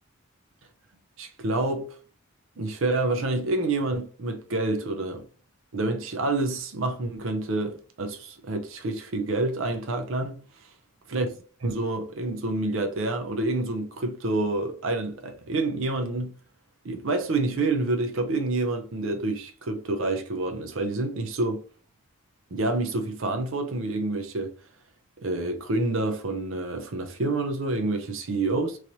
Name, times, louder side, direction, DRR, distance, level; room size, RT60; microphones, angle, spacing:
voice 1, 1.2-1.9 2.6-5.3 5.7-10.4 11.1-11.3 11.6-16.3 16.8-21.6 22.5-24.5 25.2-28.8, right 2 dB, 65° right, 0.5 m, -28 dB
3.1 x 2.9 x 2.6 m
head